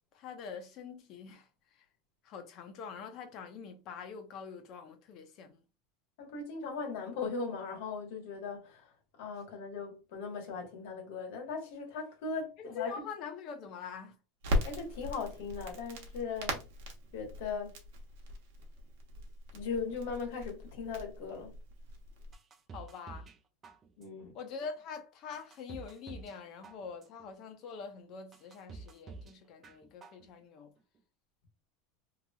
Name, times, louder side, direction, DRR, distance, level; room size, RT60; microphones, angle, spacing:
voice 1, 0.1-1.9 2.2-5.6 12.6-14.2 22.7-23.3 24.3-30.7, left 6 dB, 35° left, 0.6 m, -44 dB
voice 2, 6.2-8.9 9.2-12.9 14.6-16.7 17.1-17.7 19.5-21.6 24.0-24.4, left 5 dB, 65° left, 1.3 m, -38 dB
Crackle, 14.4-22.3, equal, 70° right, 0.9 m, -39 dB
sound 1, 22.3-23.4 23.6-24.3 24.8-24.9 25.3-26.4 26.6-27.3 27.8-27.9 28.3-29.3 29.6-30.3 30.6-30.7, right 4 dB, 20° right, 0.3 m, -49 dB
2.9 x 2.8 x 2.3 m
supercardioid pair, 175°, 0 cm